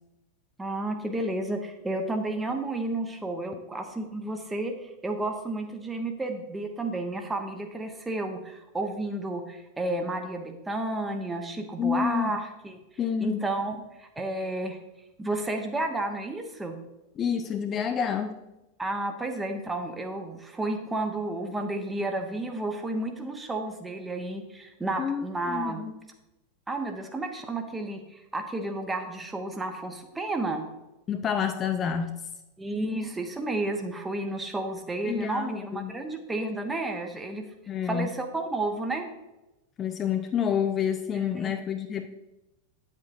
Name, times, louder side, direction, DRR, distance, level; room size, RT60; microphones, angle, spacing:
voice 1, 0.6-12.8 13.2-14.8 15.2-16.8 18.8-25.8 26.7-30.6 32.6-37.5 37.8-39.0 41.2-41.5, right 2 dB, 10° right, 5 dB, 1.0 m, -32 dB
voice 2, 11.8-12.4 13.0-13.4 17.2-18.4 25.0-25.9 31.1-32.2 35.0-35.9 37.7-38.1 39.8-42.2, left 8 dB, 25° left, 7 dB, 0.4 m, -28 dB
9.5 x 7.4 x 2.6 m, 0.97 s
figure-of-eight pair, 90°, 0 cm